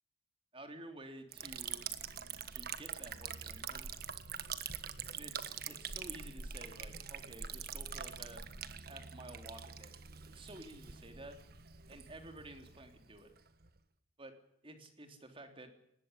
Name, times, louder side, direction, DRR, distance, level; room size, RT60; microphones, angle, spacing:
voice 1, 0.5-1.9 2.5-3.9 5.1-8.4 8.9-11.4 11.9-13.3 14.2-14.4 14.6-15.7, right 1 dB, 30° right, 6 dB, 3.4 m, -52 dB
Liquid, 1.3-13.8, right 7 dB, 55° right, 1.5 m, -45 dB
20.0 x 18.5 x 9.9 m, 0.77 s
head